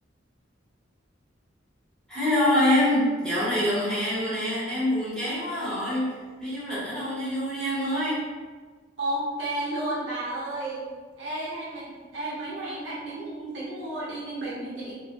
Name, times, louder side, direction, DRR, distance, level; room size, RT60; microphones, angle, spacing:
voice 1, 2.1-8.2, left 1 dB, 5° left, -11 dB, 0.8 m, -25 dB
voice 2, 9.0-10.8 11.2-15.0, right 1 dB, 80° right, -6 dB, 0.7 m, -32 dB
2.1 x 2.0 x 2.8 m, 1.4 s
head